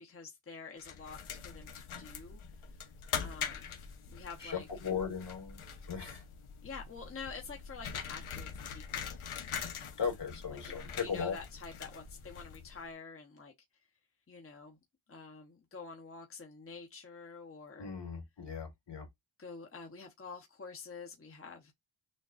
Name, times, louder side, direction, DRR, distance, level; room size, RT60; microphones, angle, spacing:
voice 1, 0.0-2.4 3.2-3.7 4.1-4.7 6.6-9.3 10.6-13.5 14.3-14.8 15.1-17.9 19.4-21.7, left 5 dB, 30° left, 0.9 m, -48 dB
sound 1, 0.8-12.8, left 7 dB, 85° left, 0.9 m, -43 dB
voice 2, 4.4-6.2 10.0-11.4 17.8-19.1, left 6 dB, 60° left, 2.1 m, -37 dB
6.3 x 2.3 x 2.4 m
cardioid pair, 70°, 48 cm